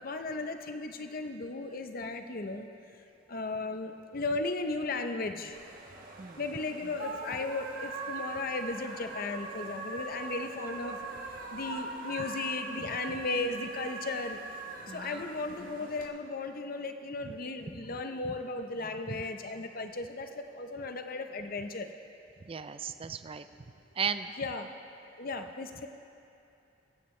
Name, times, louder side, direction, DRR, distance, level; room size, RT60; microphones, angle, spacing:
voice 1, 0.0-2.7 3.3-5.6 6.4-11.0 11.5-14.4 14.9-21.9 24.4-24.7 25.2-25.9, left 3 dB, 50° left, 7 dB, 0.7 m, -36 dB
sound 1, 5.5-16.1, right 3 dB, 50° right, 1.2 m, -41 dB
voice 2, 14.9-15.2 17.2-17.3 17.8-18.0 19.1-19.2 22.4-23.5 24.0-24.3, right 6 dB, 30° right, 11 dB, 0.4 m, -36 dB
21.5 x 8.9 x 3.2 m, 2.7 s
head